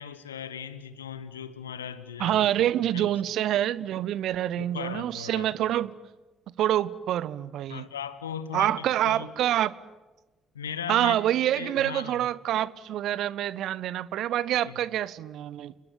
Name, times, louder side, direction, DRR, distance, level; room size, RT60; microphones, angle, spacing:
voice 1, 0.0-2.7 2.9-3.1 4.6-5.5 7.7-9.3 10.5-11.2 11.5-12.3 14.6-14.8, left 7 dB, 80° left, 1.3 m, -38 dB
voice 2, 2.2-5.9 6.6-7.8 8.5-9.7 10.9-15.7, right 12 dB, 60° right, 0.8 m, -26 dB
30.0 x 21.5 x 8.8 m
figure-of-eight pair, 45°, 0 cm